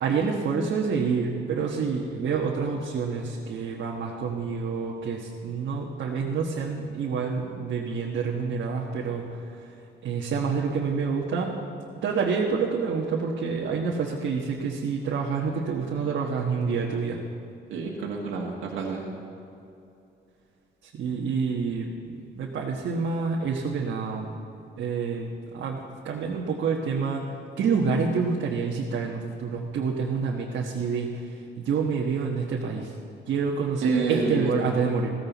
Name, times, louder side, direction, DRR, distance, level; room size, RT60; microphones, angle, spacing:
voice 1, 0.0-9.4 10.0-11.5 12.0-17.2 20.8-24.3 24.8-32.9 33.3-35.1, right 5 dB, 65° right, -2 dB, 1.3 m, -28 dB
voice 2, 17.7-19.0 33.8-34.5, right 4 dB, 85° right, -2 dB, 1.6 m, -28 dB
15.5 x 14.0 x 4.1 m, 2.7 s
cardioid pair, 90°, 20 cm